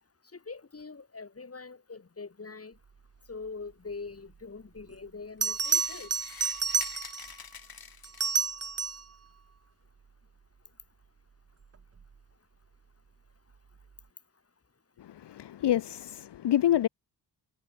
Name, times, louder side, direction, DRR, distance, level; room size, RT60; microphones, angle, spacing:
voice 1, 0.3-2.8 3.3-6.1, left 4 dB, 30° left, 3.5 m, -43 dB
Bell, 4.8-4.9 5.4-7.3 8.0-9.1 11.8-12.0, right 6 dB, 35° right, 1.3 m, -30 dB
sound 1, 5.6-8.5, left 6 dB, 55° left, 5.0 m, -46 dB
voice 2, 15.0-16.9, left 11 dB, 70° left, 1.1 m, -27 dB
cardioid pair, 70°, 44 cm